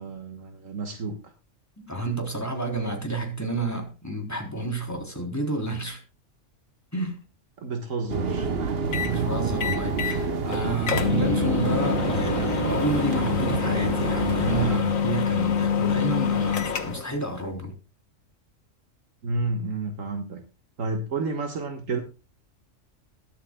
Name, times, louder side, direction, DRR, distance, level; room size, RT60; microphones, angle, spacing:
voice 1, 0.0-1.3 7.6-8.5 19.2-20.4 20.8-22.0, right 3 dB, 75° right, 1.9 m, -30 dB
voice 2, 1.8-6.0 6.9-7.2 8.9-17.7, right 2 dB, 10° left, 3.6 m, -30 dB
sound 1, 8.1-14.8, right 5 dB, 50° right, 1.2 m, -28 dB
sound 2, 8.9-9.2 9.6-10.2 10.5-10.6 10.9-17.1, left 6 dB, 85° left, 1.7 m, -26 dB
22.0 x 8.3 x 2.3 m
omnidirectional pair, 1.4 m